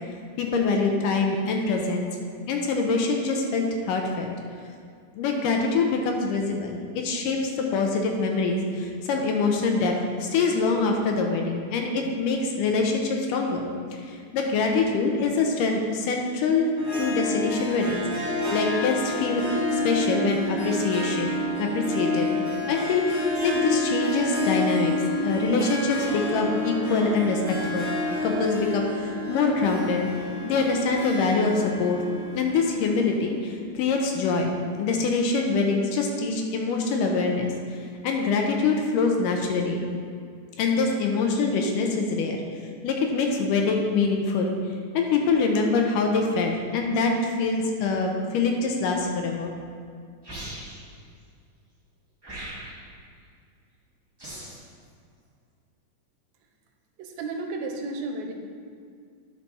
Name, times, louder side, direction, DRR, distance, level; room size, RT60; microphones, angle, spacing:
voice 1, 0.4-2.1 2.5-4.3 5.2-13.7 14.0-16.7 17.0-19.4 19.7-22.4 22.7-24.9 25.2-28.0 28.2-30.1 30.4-32.0 32.4-39.9 40.6-42.4 42.8-44.6 44.9-49.5, left 4 dB, 75° left, 2 dB, 2.2 m, -25 dB
Harp, 16.8-33.3, left 1 dB, 25° left, 0.3 m, -29 dB
sound 1, 50.2-50.9 52.2-52.9 54.2-54.7, right 1 dB, 15° right, 0.9 m, -39 dB
voice 2, 57.0-58.3, right 2 dB, 90° right, 3 dB, 2.7 m, -32 dB
9.8 x 6.1 x 4.2 m, 2.2 s
omnidirectional pair, 4.1 m